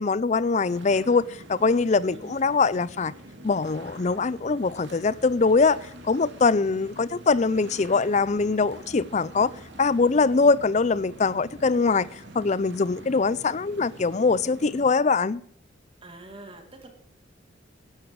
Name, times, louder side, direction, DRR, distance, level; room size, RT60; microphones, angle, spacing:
voice 1, 0.0-3.1 3.4-5.8 6.0-9.5 9.8-12.1 12.3-15.4, left 4 dB, 35° left, 0.4 m, -22 dB
sound 1, 0.6-14.9, right 1 dB, 70° right, 2.6 m, -45 dB
voice 2, 16.0-16.9, right 2 dB, 30° right, 2.2 m, -44 dB
13.0 x 11.5 x 4.7 m
head